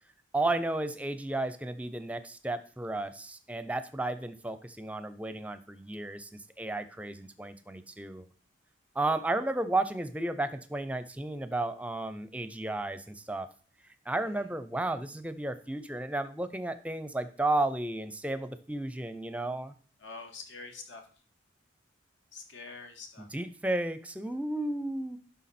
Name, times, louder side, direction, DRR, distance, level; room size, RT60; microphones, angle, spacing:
voice 1, 0.3-8.3 8.9-13.5 14.1-19.7 23.2-25.2, right 2 dB, 5° right, 11 dB, 0.5 m, -33 dB
voice 2, 20.0-21.0 22.3-23.3, left 4 dB, 75° left, 5 dB, 1.6 m, -45 dB
11.5 x 5.8 x 4.2 m, 0.41 s
head